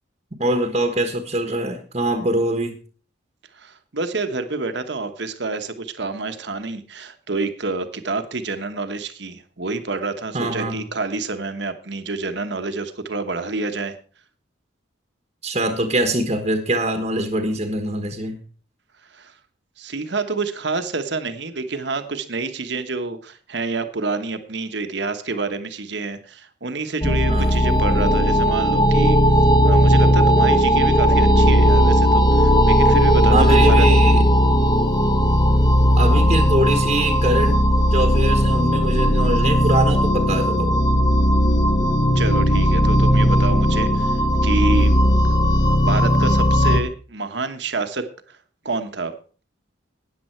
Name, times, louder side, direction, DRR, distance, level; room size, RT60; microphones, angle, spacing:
voice 1, 0.4-2.8 10.3-10.8 15.4-18.4 27.3-27.5 33.3-34.2 36.0-37.6 37.9-40.8, right 1 dB, 35° right, 5 dB, 1.3 m, -23 dB
voice 2, 3.5-14.0 19.1-19.3 19.8-33.9 42.1-44.9 45.8-48.4 48.6-49.1, right 3 dB, 60° right, 8 dB, 1.2 m, -28 dB
sound 1, 27.0-46.8, equal, 20° left, 1.2 m, -16 dB
13.0 x 9.5 x 4.5 m, 0.40 s
head